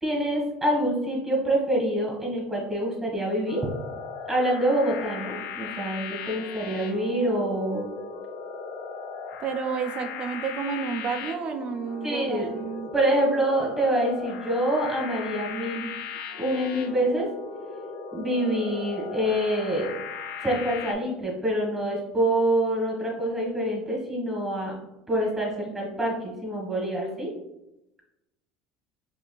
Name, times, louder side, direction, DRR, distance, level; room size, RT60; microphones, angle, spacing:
voice 1, 0.0-3.6 4.3-7.9 12.0-12.5 12.9-15.9 16.4-17.3 18.1-19.9 20.4-24.7 25.1-27.3, right 1 dB, 10° right, -3 dB, 1.5 m, -26 dB
sound 1, 3.5-20.9, left 6 dB, 70° left, 0.5 m, -38 dB
voice 2, 9.4-12.9, right 5 dB, 45° right, 7 dB, 0.5 m, -31 dB
4.7 x 3.1 x 2.3 m, 0.94 s
supercardioid pair, 100°, 2 cm